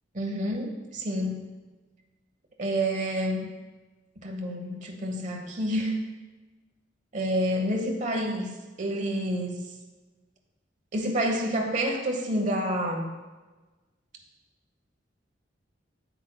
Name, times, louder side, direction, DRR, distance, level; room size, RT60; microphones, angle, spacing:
voice 1, 0.1-1.5 2.6-3.5 4.2-6.0 7.1-8.5 8.8-9.6 10.9-13.1, equal, 45° right, 2 dB, 1.1 m, -28 dB
9.2 x 8.1 x 2.3 m, 1.2 s
head